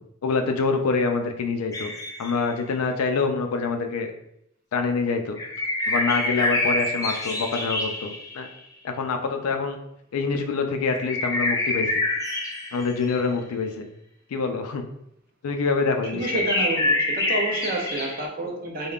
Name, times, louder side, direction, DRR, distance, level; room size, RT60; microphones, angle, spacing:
voice 1, 0.2-1.9 2.2-4.1 4.7-5.4 5.9-8.5 8.8-9.8 10.1-11.9 12.7-13.9 14.3-14.8 15.4-16.2, left 4 dB, 85° left, 5 dB, 0.4 m, -25 dB
sound 1, 1.7-2.5 5.4-8.5 10.9-13.2 16.0-18.3, left 2 dB, 15° left, 0.3 m, -26 dB
voice 2, 16.1-18.9, right 2 dB, 40° right, 1 dB, 0.5 m, -29 dB
3.4 x 2.2 x 2.4 m, 0.79 s
head